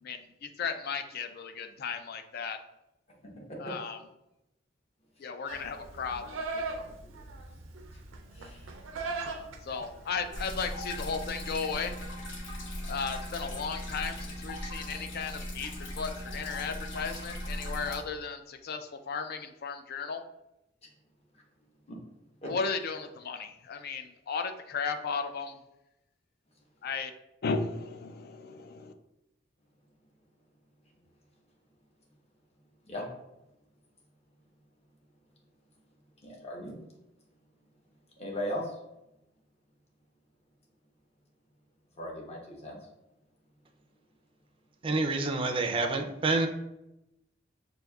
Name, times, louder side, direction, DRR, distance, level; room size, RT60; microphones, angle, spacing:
voice 1, 0.0-2.6 3.6-4.0 5.2-6.4 9.6-12.0 12.9-20.2 22.5-25.6 26.8-27.1 27.4-28.9, left 5 dB, 55° left, 7 dB, 0.4 m, -35 dB
Livestock farm animals working animals, 5.5-10.6, right 3 dB, 90° right, 0.5 m, -39 dB
voice 2, 8.3-8.8 21.9-22.0 22.4-22.5 32.9-33.0 36.2-36.8 38.2-38.7 42.0-42.8, equal, 35° left, -2 dB, 0.9 m, -37 dB
sound 1, 10.3-18.0, left 1 dB, 70° left, 0.8 m, -39 dB
voice 3, 44.8-46.5, right 3 dB, 30° right, 4 dB, 0.4 m, -28 dB
6.2 x 2.6 x 2.3 m, 0.89 s
head